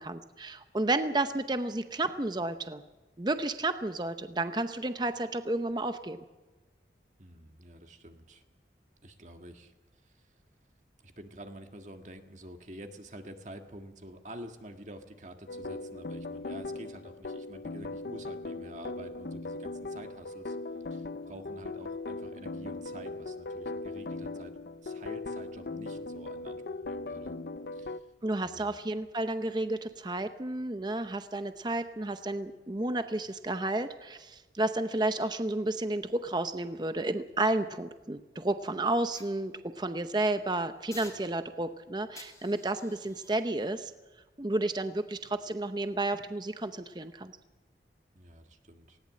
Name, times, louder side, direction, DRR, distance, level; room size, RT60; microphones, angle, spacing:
voice 1, 0.0-2.8 3.2-6.2 28.2-43.9 44.4-47.3, right 2 dB, 25° right, 9 dB, 0.7 m, -31 dB
voice 2, 7.2-8.4 9.0-9.7 10.0-10.3 11.0-20.6 20.9-24.5 24.8-27.4 27.7-28.1 28.4-28.8 48.2-49.0, right 1 dB, 40° right, 5 dB, 1.7 m, -48 dB
sound 1, 15.5-28.0, left 3 dB, 60° left, 0.6 m, -39 dB
sound 2, 39.1-40.1 40.9-41.7 42.2-45.4 45.9-46.1, left 3 dB, 20° left, 2.9 m, -54 dB
19.0 x 17.5 x 7.6 m, 1.2 s
head